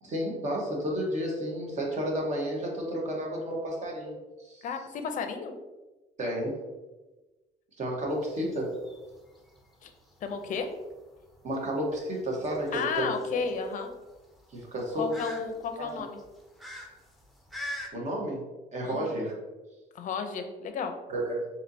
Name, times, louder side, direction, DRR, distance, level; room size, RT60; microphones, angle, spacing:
voice 1, 0.0-4.7 6.2-6.5 7.8-8.7 11.4-13.5 14.5-15.1 15.8-15.9 17.9-18.5 18.7-19.3 21.1-21.5, equal, 45° right, -1 dB, 1.1 m, -31 dB
voice 2, 4.6-5.5 9.8-9.9 10.2-10.7 12.7-13.9 15.0-16.2 18.8-19.2 19.9-20.9, left 6 dB, 50° left, 6 dB, 0.5 m, -33 dB
sound 1, 8.1-17.9, left 1 dB, ahead, 0.6 m, -45 dB
4.3 x 2.8 x 2.7 m, 1.1 s
cardioid pair, 110°, 17 cm